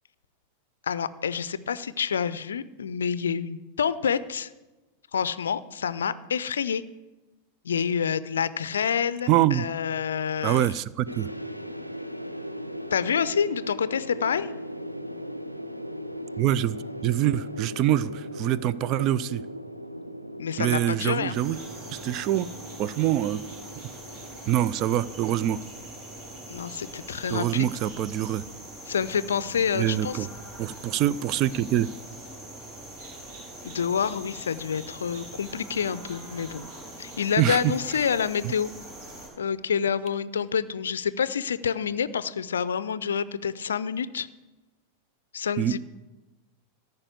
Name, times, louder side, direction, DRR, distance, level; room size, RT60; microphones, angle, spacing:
voice 1, 0.8-4.5 5.1-6.8 7.6-10.7 12.9-14.5 20.4-21.4 26.5-27.7 28.9-30.3 33.6-36.6 37.0-38.7 39.4-44.3 45.3-45.8, left 7 dB, 65° left, 17 dB, 0.4 m, -28 dB
voice 2, 9.3-9.7 10.4-11.3 16.4-19.4 20.6-21.6 21.9-22.5 22.8-23.4 24.5-25.6 27.3-28.4 29.7-30.3 30.6-31.9 37.4-37.6 38.4-38.5 45.6-45.7, right 12 dB, 40° right, 18 dB, 0.4 m, -25 dB
sound 1, 11.1-27.2, equal, 90° right, 0.6 m, -39 dB
sound 2, 21.3-39.3, right 1 dB, 60° right, 4.9 m, -43 dB
14.0 x 5.3 x 8.1 m, 1.1 s
figure-of-eight pair, 90°, 0 cm